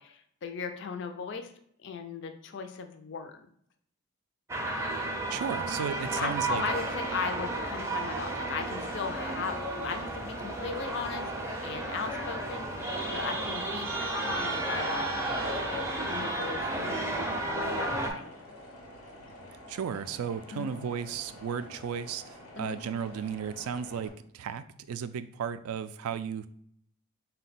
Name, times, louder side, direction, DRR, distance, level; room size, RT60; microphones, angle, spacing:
voice 1, 0.0-1.5 1.8-3.5 6.2-11.3 11.6-15.1 15.7-17.0 17.4-18.4 20.5-20.7 22.5-22.8, left 5 dB, 55° left, 7 dB, 0.4 m, -37 dB
sound 1, 4.5-18.1, right 2 dB, 10° right, 0.4 m, -33 dB
voice 2, 5.3-6.6 19.7-26.5, right 7 dB, 80° right, 13 dB, 0.3 m, -34 dB
sound 2, 8.8-24.1, left 1 dB, 90° left, 1.1 m, -49 dB
4.4 x 2.2 x 4.0 m, 0.66 s
head